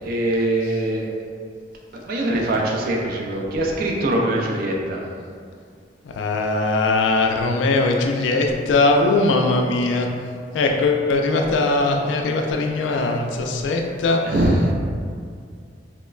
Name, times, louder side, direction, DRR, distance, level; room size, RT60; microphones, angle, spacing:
voice 1, 0.0-1.1 1.9-5.0 14.2-14.7, right 1 dB, 55° right, -1 dB, 0.3 m, -22 dB
voice 2, 6.2-10.1 10.5-14.2, left 3 dB, 80° left, 2 dB, 0.3 m, -20 dB
2.9 x 2.1 x 2.3 m, 2.1 s
head